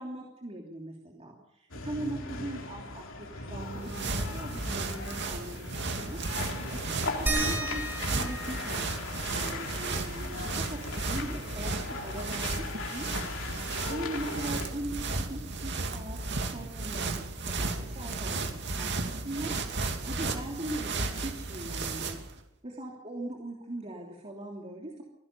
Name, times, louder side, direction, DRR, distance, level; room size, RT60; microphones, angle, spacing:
voice 1, 0.0-5.5 5.9-11.7 12.0-13.4 13.9-22.2 22.6-25.0, right 1 dB, 30° right, -1 dB, 3.1 m, -40 dB
sound 1, 1.7-14.7, left 3 dB, 65° left, 3.8 m, -39 dB
sound 2, 3.6-22.3, right 3 dB, 55° right, 2.6 m, -34 dB
sound 3, 7.3-12.4 12.7-12.8 13.2-14.9 16.2-16.3 17.0-17.1, right 1 dB, 10° right, 5.6 m, -38 dB
24.5 x 17.0 x 7.0 m, 0.82 s
head